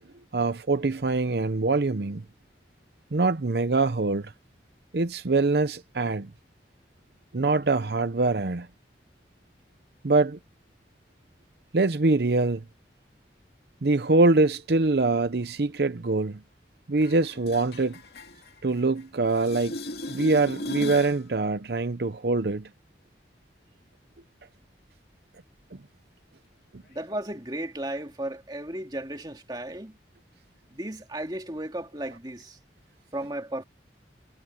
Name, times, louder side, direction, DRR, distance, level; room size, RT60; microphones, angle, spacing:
voice 1, 0.3-2.2 3.1-4.3 4.9-6.3 7.3-8.7 10.0-10.4 11.7-12.6 13.8-16.4 16.9-18.0 18.6-19.8 20.1-22.7, right 3 dB, 65° right, 0.7 m, -24 dB
sound 1, 17.0-19.0 19.3-21.2 27.0-27.1, left 2 dB, 65° left, 2.6 m, -38 dB
voice 2, 26.9-30.0 30.7-32.6 33.1-33.6, right 1 dB, 25° right, 2.3 m, -34 dB
head